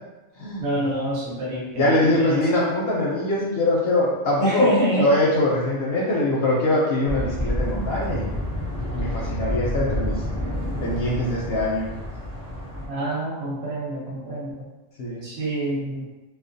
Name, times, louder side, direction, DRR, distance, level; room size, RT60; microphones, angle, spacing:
voice 1, 0.6-2.4 4.4-5.1 12.9-14.6 15.2-16.0, right 1 dB, 60° right, -5 dB, 0.8 m, -26 dB
voice 2, 1.7-8.3 8.9-10.2 10.8-11.9 15.0-15.2, left 1 dB, 65° left, -5 dB, 0.7 m, -23 dB
sound 1, 7.1-12.9, left 1 dB, 30° right, 0.3 m, -29 dB
2.4 x 2.1 x 2.5 m, 1.1 s
omnidirectional pair, 1.4 m